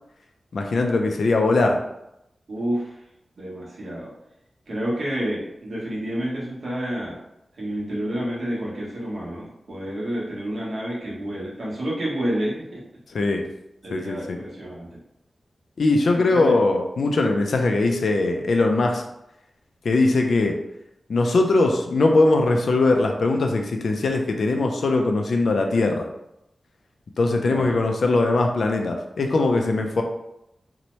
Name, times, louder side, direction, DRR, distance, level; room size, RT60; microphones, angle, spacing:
voice 1, 0.5-1.8 13.1-13.4 13.9-14.4 15.8-19.0 19.8-20.6 21.1-26.1 27.2-30.0, left 2 dB, 70° left, 3 dB, 0.4 m, -21 dB
voice 2, 2.5-2.9 3.4-4.1 4.7-7.2 7.6-12.8 13.8-15.0 16.1-16.5 27.4-27.7, right 1 dB, 55° right, -6 dB, 0.9 m, -29 dB
2.7 x 2.1 x 3.0 m, 0.85 s
wide cardioid pair, 145°, 0 cm